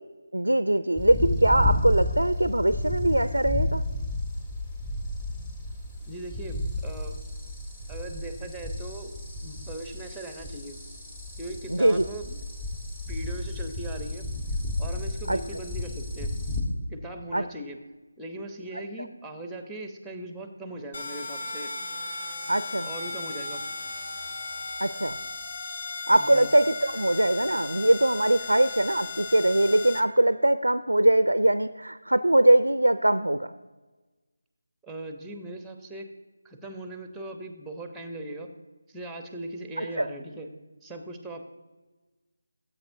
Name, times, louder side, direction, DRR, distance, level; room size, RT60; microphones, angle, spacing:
voice 1, 0.3-3.8 11.7-12.0 15.3-15.4 17.3-17.4 22.5-22.9 24.8-25.2 26.1-33.5 39.8-40.1, right 1 dB, 90° right, 12 dB, 0.4 m, -22 dB
sound 1, 1.0-16.6, left 1 dB, 20° left, 1.3 m, -32 dB
voice 2, 6.1-7.1 7.9-9.1 9.4-10.7 11.4-12.4 13.1-14.3 14.8-16.3 16.9-17.8 18.2-21.7 22.8-23.6 26.2-26.5 34.8-36.1 36.4-38.5 38.9-40.5 40.8-41.5, right 1 dB, ahead, 5 dB, 0.7 m, -39 dB
sound 2, 20.9-30.0, left 3 dB, 55° left, 1.0 m, -36 dB
14.5 x 8.1 x 2.6 m, 1.2 s
figure-of-eight pair, 160°, 0 cm